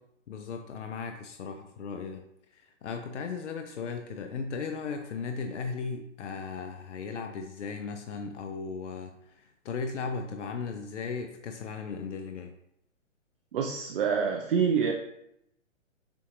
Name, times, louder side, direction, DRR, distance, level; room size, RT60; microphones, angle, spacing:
voice 1, 0.3-2.2 2.5-9.1 9.4-12.5, left 5 dB, 65° left, 5 dB, 0.6 m, -36 dB
voice 2, 13.5-14.9, right 6 dB, 45° right, 2 dB, 0.6 m, -26 dB
7.0 x 2.8 x 2.5 m, 0.78 s
figure-of-eight pair, 130°, 39 cm